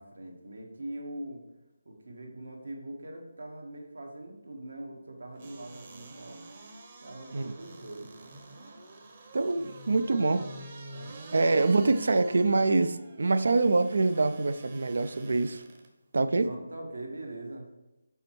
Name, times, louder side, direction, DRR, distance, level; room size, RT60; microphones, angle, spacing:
voice 1, 0.0-1.4 1.8-6.4 7.0-8.1 10.1-10.3 10.9-12.0 16.4-17.7, right 1 dB, 80° right, 2 dB, 1.6 m, -42 dB
sound 1, 5.4-15.9 16.3-16.4, right 2 dB, 35° right, 0.9 m, -47 dB
voice 2, 9.3-10.4 11.3-15.6 16.1-16.5, right 3 dB, 65° right, 12 dB, 0.4 m, -25 dB
5.5 x 4.3 x 4.6 m, 1.0 s
figure-of-eight pair, 165°, 0 cm